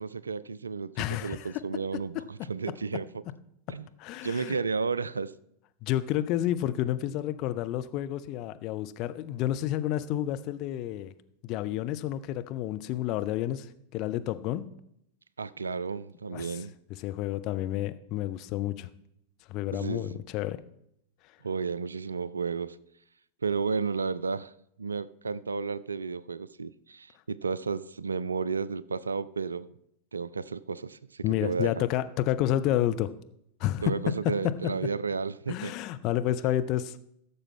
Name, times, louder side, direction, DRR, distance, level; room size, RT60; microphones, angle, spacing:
voice 1, 0.0-0.9 1.2-3.2 3.7-3.9 4.2-5.3 15.4-16.7 19.7-20.2 21.4-22.8 23.4-24.5 24.8-29.7 30.1-31.8 33.8-35.7, right 5 dB, 75° right, 0.3 m, -32 dB
voice 2, 1.0-1.5 4.0-4.6 5.8-11.1 11.4-13.7 13.9-14.7 16.3-16.6 17.0-18.9 19.5-20.6 31.2-33.1 33.6-33.9 35.5-37.0, left 13 dB, 40° left, 0.5 m, -30 dB
15.0 x 6.7 x 3.7 m
figure-of-eight pair, 90°, 0 cm